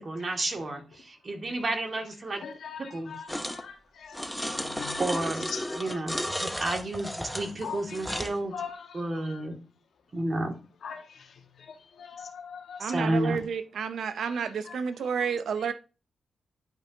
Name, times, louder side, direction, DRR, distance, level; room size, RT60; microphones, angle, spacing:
voice 1, 0.0-2.4 2.9-3.1 5.0-5.5 5.7-8.5 8.9-9.6 10.1-10.5 12.8-13.4, right 2 dB, 45° right, 2.0 m, -31 dB
voice 2, 2.4-5.2 5.5-6.4 7.6-9.5 10.8-13.1 14.2-14.8 15.2-15.3 15.6-15.7, left 6 dB, 75° left, 1.3 m, -42 dB
sound 1, 3.3-3.6 4.1-8.4, equal, 5° left, 0.8 m, -34 dB
voice 3, 12.8-15.7, right 6 dB, 75° right, 0.5 m, -30 dB
10.5 x 5.2 x 2.7 m
cardioid pair, 70°, 0 cm